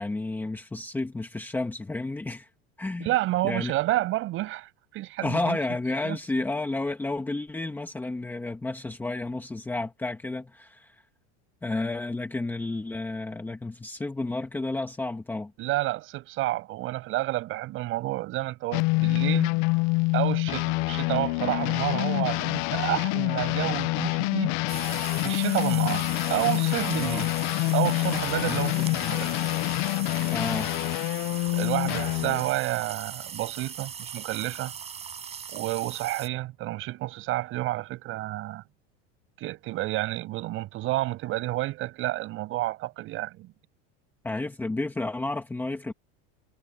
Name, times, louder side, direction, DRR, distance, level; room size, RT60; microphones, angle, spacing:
voice 1, 0.0-2.5 2.8-3.1 3.4-3.7 5.2-11.0 11.6-15.5 27.0-27.3 28.5-29.2 30.3-30.7 44.2-45.9, left 2 dB, 5° left, 1.6 m, -31 dB
voice 2, 3.0-5.6 6.0-6.2 15.6-19.5 20.1-24.5 25.2-27.3 27.7-29.3 31.5-34.7 35.5-38.6 39.4-43.5, right 17 dB, 40° right, 6.4 m, -30 dB
sound 1, 18.7-32.5, left 24 dB, 50° left, 0.7 m, -26 dB
sound 2, 24.7-36.3, right 7 dB, 20° right, 5.1 m, -39 dB
cardioid pair, 175°, 32 cm